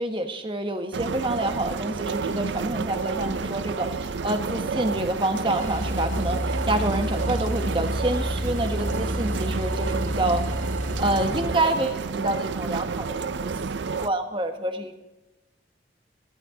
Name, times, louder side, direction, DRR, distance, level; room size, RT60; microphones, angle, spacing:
voice 1, 0.0-10.4 11.0-13.5 13.8-14.9, right 1 dB, 30° right, 7 dB, 1.4 m, -28 dB
sound 1, 0.9-14.1, right 4 dB, 80° right, 0.6 m, -30 dB
sound 2, 5.5-11.6, equal, 50° right, 4.0 m, -30 dB
21.0 x 16.5 x 3.8 m, 1.0 s
head